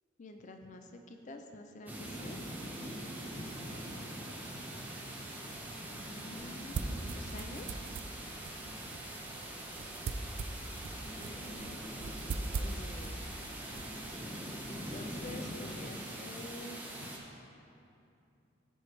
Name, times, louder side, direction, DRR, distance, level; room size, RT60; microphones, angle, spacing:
voice 1, 0.2-2.4 3.3-3.5 6.1-6.8 7.1-7.8 11.5-11.8 12.6-13.2 14.7-17.1, left 2 dB, 40° left, 5 dB, 0.4 m, -48 dB
sound 1, 1.9-17.2, right 1 dB, 10° right, 0.8 m, -43 dB
voice 2, 2.6-4.4, right 1 dB, 45° right, -7 dB, 1.9 m, -62 dB
sound 2, 5.1-14.9, right 3 dB, 65° right, 0.4 m, -42 dB
13.0 x 4.7 x 3.2 m, 2.6 s
head